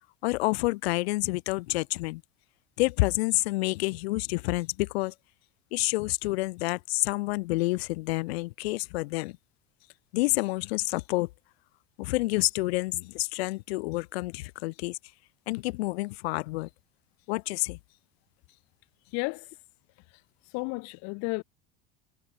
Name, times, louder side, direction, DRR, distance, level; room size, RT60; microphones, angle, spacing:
voice 1, 0.2-2.2 2.8-5.1 5.7-9.4 10.1-11.3 12.0-15.0 15.5-16.7 17.3-17.8, left 22 dB, 85° left, 0.8 m, -28 dB
voice 2, 19.1-19.5 20.5-21.4, left 31 dB, 60° left, 0.5 m, -32 dB
supercardioid pair, 100°, 31 cm